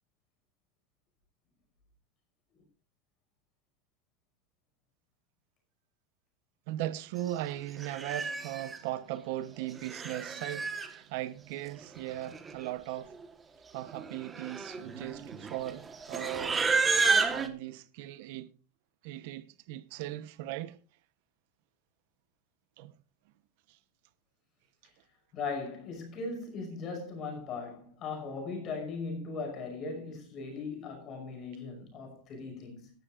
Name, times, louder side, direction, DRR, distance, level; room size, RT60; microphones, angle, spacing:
voice 1, 6.7-13.1 13.7-16.7 17.3-18.5 19.0-20.8 22.8-22.9, right 14 dB, 60° right, 0.9 m, -38 dB
Livestock farm animals working animals, 7.3-7.4 7.8-8.8 9.6-10.9 12.0-12.1 12.3-12.7 13.0-13.2 13.9-17.5, right 4 dB, 15° right, 1.3 m, -31 dB
voice 2, 25.3-32.9, left 4 dB, 30° left, 5.7 m, -38 dB
17.5 x 12.0 x 2.5 m
supercardioid pair, 165°, 0 cm